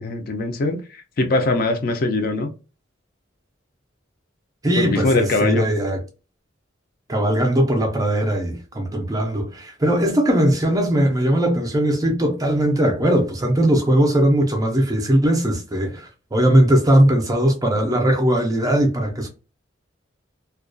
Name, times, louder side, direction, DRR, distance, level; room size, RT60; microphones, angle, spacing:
voice 1, 0.0-2.5 4.8-5.6, left 2 dB, 50° left, 0.4 m, -22 dB
voice 2, 4.6-6.0 7.1-19.3, right 1 dB, 20° right, 0.4 m, -19 dB
2.3 x 2.2 x 2.5 m
head